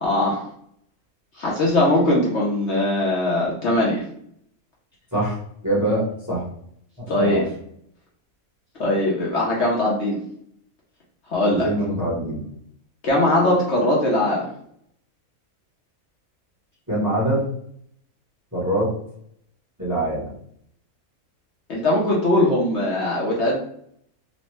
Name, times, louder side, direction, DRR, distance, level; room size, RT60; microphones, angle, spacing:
voice 1, 0.0-0.4 1.4-4.0 7.1-7.4 8.8-10.2 11.3-11.7 13.0-14.5 21.7-23.6, left 1 dB, 55° left, -5 dB, 0.9 m, -20 dB
voice 2, 5.6-6.4 7.0-7.5 11.5-12.4 16.9-17.5 18.5-18.9 19.8-20.3, right 1 dB, 15° right, -7 dB, 0.8 m, -24 dB
3.0 x 2.1 x 3.0 m, 0.66 s
omnidirectional pair, 1.6 m